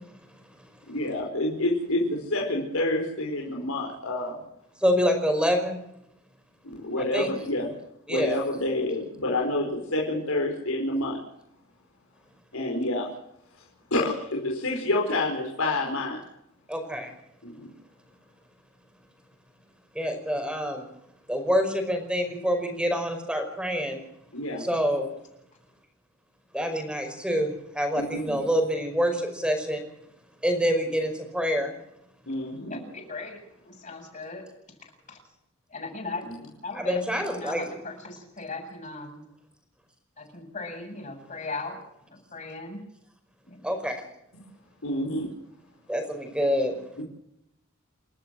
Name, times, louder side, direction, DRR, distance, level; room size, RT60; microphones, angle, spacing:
voice 1, 0.9-4.4 6.6-7.7 8.1-11.2 12.5-13.1 13.9-16.2 17.4-17.7 24.3-24.7 27.9-28.4 32.3-32.8 36.2-36.3 44.8-45.4 47.0-47.1, left 1 dB, 75° left, -1 dB, 4.9 m, -28 dB
voice 2, 4.8-5.8 7.0-7.3 8.1-8.4 16.7-17.1 20.0-20.9 21.3-24.0 24.6-25.1 26.5-29.8 30.4-31.7 36.7-37.8 43.6-44.0 45.9-46.7, equal, 5° right, 5 dB, 5.2 m, -26 dB
voice 3, 32.7-34.4 35.1-35.2 35.7-36.2 36.6-39.2 40.2-41.8 42.1-42.9 43.4-43.6, left 3 dB, 35° left, 2 dB, 7.9 m, -38 dB
29.5 x 13.0 x 7.7 m, 0.78 s
head